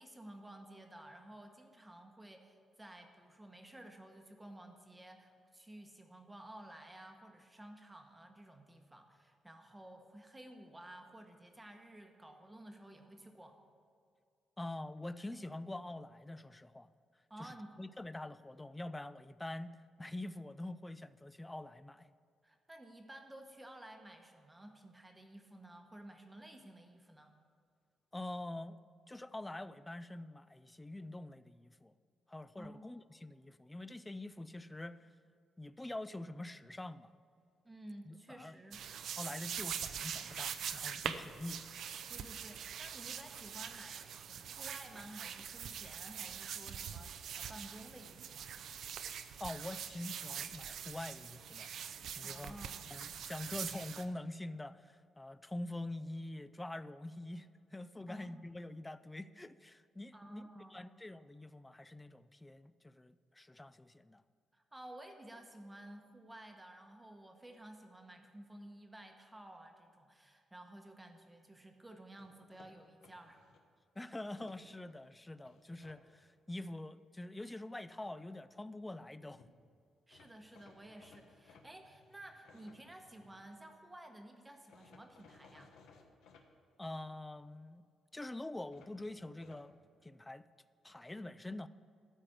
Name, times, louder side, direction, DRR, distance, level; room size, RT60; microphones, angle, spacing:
voice 1, 0.0-13.6 17.3-17.8 22.4-27.3 32.6-32.9 37.6-38.8 42.1-48.6 52.2-52.9 58.1-58.4 60.1-60.9 64.5-73.5 80.1-85.7, right 1 dB, 10° right, 4 dB, 0.9 m, -53 dB
voice 2, 14.6-16.9 17.4-17.5 17.8-22.1 28.1-28.8 29.1-31.9 32.3-35.1 35.6-37.1 38.1-38.6 39.2-41.6 49.4-52.5 52.9-60.4 60.7-64.2 74.0-79.4 86.8-87.8 88.1-89.7 90.0-90.5 90.8-91.7, left 1 dB, 10° left, 14 dB, 0.3 m, -45 dB
sound 1, 38.7-54.0, right 8 dB, 65° right, 0.5 m, -43 dB
sound 2, 72.2-73.6 74.2-75.0 75.4-76.0 79.1-79.2 79.4-79.5 80.1-83.6 84.7-86.5 88.7-89.7, left 4 dB, 85° left, 1.1 m, -63 dB
13.0 x 4.8 x 7.7 m, 2.4 s
cardioid pair, 140°, 0 cm